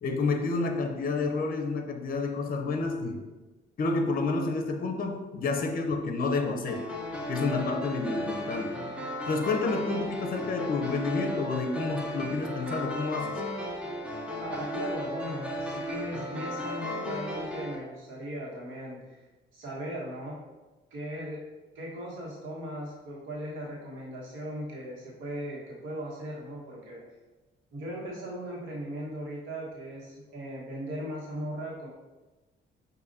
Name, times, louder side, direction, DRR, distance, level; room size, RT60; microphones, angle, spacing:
voice 1, 0.0-3.2 3.8-6.9 7.3-8.8 9.3-13.4, left 3 dB, 45° left, 5 dB, 0.6 m, -29 dB
sound 1, 6.7-17.8, left 1 dB, 5° right, 0.8 m, -35 dB
voice 2, 14.4-19.2 19.5-20.4 20.9-21.4 21.7-27.0 27.7-31.9, equal, 85° right, -5 dB, 1.4 m, -38 dB
6.2 x 2.7 x 2.6 m, 1.2 s
cardioid pair, 90°, 20 cm